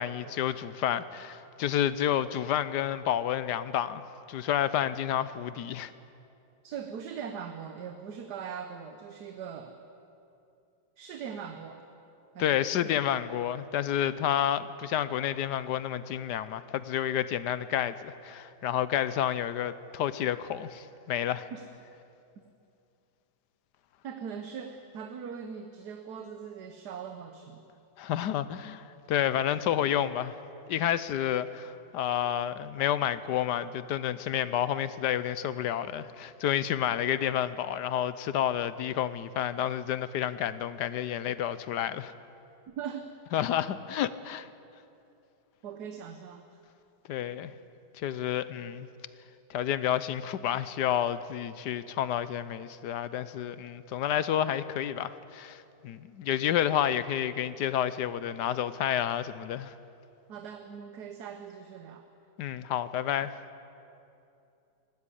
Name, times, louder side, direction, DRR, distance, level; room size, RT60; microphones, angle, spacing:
voice 1, 0.0-4.0 4.3-5.9 12.4-21.5 28.0-30.4 30.7-42.1 43.3-44.5 47.1-47.5 47.9-48.9 49.5-59.7 62.4-63.3, left 10 dB, 70° left, 15 dB, 1.2 m, -30 dB
voice 2, 6.6-9.8 11.0-11.9 12.3-13.0 21.5-21.6 24.0-27.6 42.7-43.1 45.6-46.6 60.3-62.1, right 7 dB, 65° right, 6 dB, 1.5 m, -41 dB
19.5 x 15.5 x 10.0 m, 2.7 s
omnidirectional pair, 2.0 m